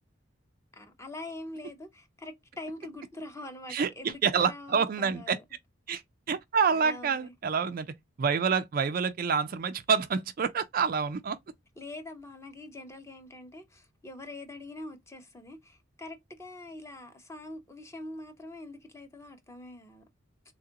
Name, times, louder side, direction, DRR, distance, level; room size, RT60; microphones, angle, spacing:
voice 1, 0.7-5.4 6.7-7.3 11.8-20.1, left 2 dB, 15° left, 0.6 m, -44 dB
voice 2, 3.7-5.4 5.9-6.0 6.3-11.4, right 6 dB, 45° right, 0.3 m, -27 dB
3.6 x 2.3 x 2.7 m
head